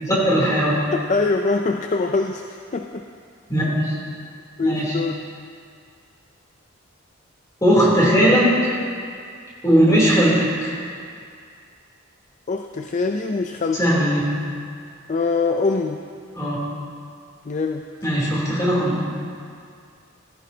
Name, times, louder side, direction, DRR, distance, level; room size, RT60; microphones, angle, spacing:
voice 1, 0.0-0.8 3.5-3.9 4.6-5.0 7.6-8.5 9.6-10.7 13.7-14.4 16.3-16.6 18.0-18.9, equal, 15° left, -6 dB, 3.1 m, -18 dB
voice 2, 0.9-3.1 4.6-5.2 12.5-14.0 15.1-16.0 17.5-17.9, left 3 dB, 35° left, 5 dB, 0.4 m, -24 dB
16.0 x 14.5 x 2.8 m, 2.3 s
head